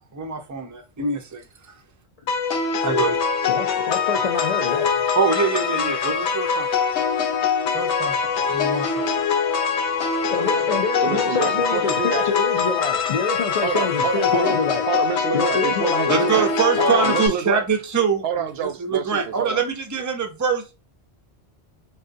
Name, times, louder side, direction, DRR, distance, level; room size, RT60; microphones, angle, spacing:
voice 1, 0.1-1.4 2.8-3.2 5.2-6.7 7.7-8.2 8.5-9.1 16.1-18.2 18.8-20.6, right 5 dB, 30° right, 0.3 m, -23 dB
sound 1, 2.3-17.3, left 6 dB, 85° left, 0.9 m, -23 dB
voice 2, 3.5-5.0 10.3-14.8 15.3-16.1, left 4 dB, 60° left, 0.4 m, -26 dB
voice 3, 10.3-12.3 13.6-14.6 14.9-16.5 16.8-17.7 18.2-19.6, right 8 dB, 70° right, 0.8 m, -27 dB
3.6 x 2.4 x 2.5 m
omnidirectional pair, 1.1 m